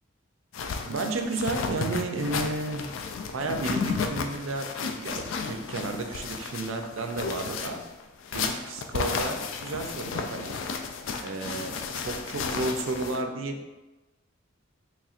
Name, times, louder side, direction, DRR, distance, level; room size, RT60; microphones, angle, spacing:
sound 1, 0.5-13.2, left 5 dB, 65° left, 0.3 m, -33 dB
voice 1, 0.8-2.8 3.3-4.7 5.0-7.8 8.3-10.5 11.2-13.6, right 2 dB, 70° right, 5 dB, 0.5 m, -32 dB
4.2 x 3.2 x 2.4 m, 1.1 s
head